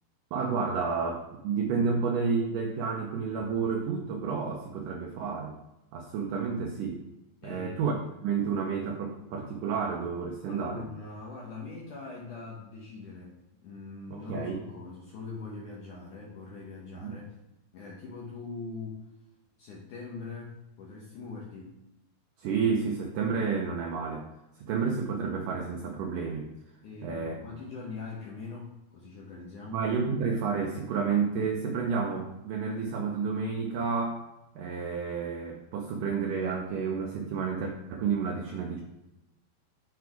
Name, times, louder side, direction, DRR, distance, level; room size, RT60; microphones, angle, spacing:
voice 1, 0.3-5.5 5.9-7.0 7.4-10.9 14.1-14.7 17.0-17.1 22.4-24.2 24.6-26.5 27.0-27.4 29.7-34.3 34.6-38.8, right 5 dB, 75° right, 0 dB, 2.0 m, -30 dB
voice 2, 7.4-7.8 10.5-13.3 13.6-17.4 17.7-19.0 19.6-21.8 26.8-29.8, left 4 dB, 65° left, -4 dB, 2.2 m, -42 dB
8.3 x 4.8 x 4.6 m, 0.91 s
omnidirectional pair, 4.7 m